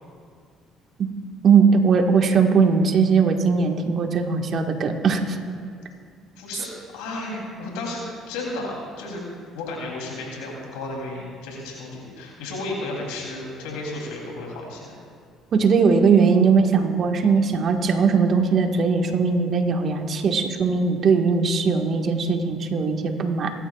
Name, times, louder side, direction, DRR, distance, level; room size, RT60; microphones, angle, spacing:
voice 1, 1.4-5.4 15.5-23.5, right 5 dB, 50° right, 3 dB, 1.6 m, -19 dB
voice 2, 6.4-6.7 6.9-9.2 9.5-14.9, left 2 dB, 80° left, -2 dB, 3.1 m, -33 dB
22.5 x 12.5 x 2.4 m, 2.1 s
hypercardioid pair, 65°, 0 cm